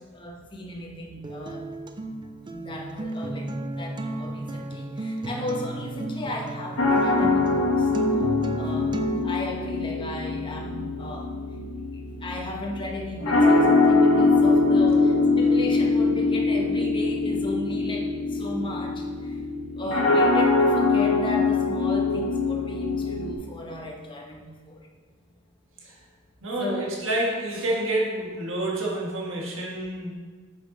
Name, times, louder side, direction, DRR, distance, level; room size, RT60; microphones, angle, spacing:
voice 1, 0.1-1.6 2.5-3.5 3.8-7.9 8.6-8.9 9.2-11.3 12.2-19.4 19.8-24.8 26.6-26.9, left 1 dB, 20° left, 0 dB, 1.0 m, -35 dB
Acoustic guitar, 1.2-9.2, right 1 dB, 20° right, 0.4 m, -33 dB
sound 1, 6.8-23.3, left 3 dB, 75° left, 1.5 m, -23 dB
voice 2, 26.4-30.1, right 1 dB, 60° right, -3 dB, 1.6 m, -28 dB
6.6 x 5.7 x 5.3 m, 1.4 s
head